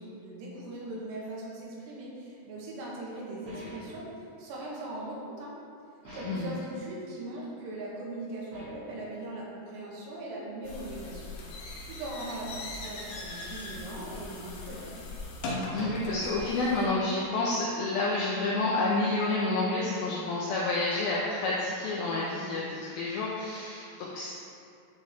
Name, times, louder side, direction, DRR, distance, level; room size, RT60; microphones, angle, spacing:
voice 1, 0.0-4.1 4.4-5.5 6.1-11.4 11.8-14.9, right 1 dB, 80° right, -5 dB, 3.4 m, -40 dB
sound 1, 3.4-4.1 6.0-6.6 8.5-9.0, equal, 55° right, 3.0 m, -45 dB
voice 2, 6.1-6.5 15.7-24.3, left 2 dB, 90° left, -5 dB, 2.1 m, -29 dB
sound 2, 10.6-16.9, left 2 dB, 70° left, 2.7 m, -39 dB
10.5 x 4.4 x 3.6 m, 2.4 s
omnidirectional pair, 5.1 m